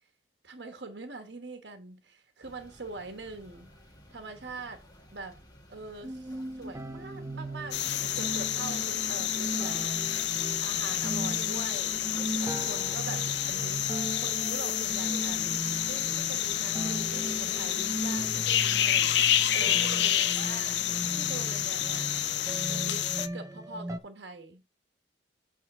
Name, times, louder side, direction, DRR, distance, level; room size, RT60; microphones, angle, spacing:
voice 1, 0.4-3.7 4.1-4.8 5.1-5.4 5.7-7.8 8.1-11.9 12.3-13.8 14.1-15.4 15.8-20.8 21.2-22.1 22.7-23.1 23.3-24.6, right 3 dB, 70° right, 1.2 m, -43 dB
sound 1, 2.4-18.5, left 1 dB, 20° left, 1.8 m, -54 dB
sound 2, 6.0-24.0, right 1 dB, 20° right, 0.4 m, -38 dB
sound 3, 7.7-23.3, left 11 dB, 70° left, 0.6 m, -29 dB
8.3 x 3.6 x 6.5 m
head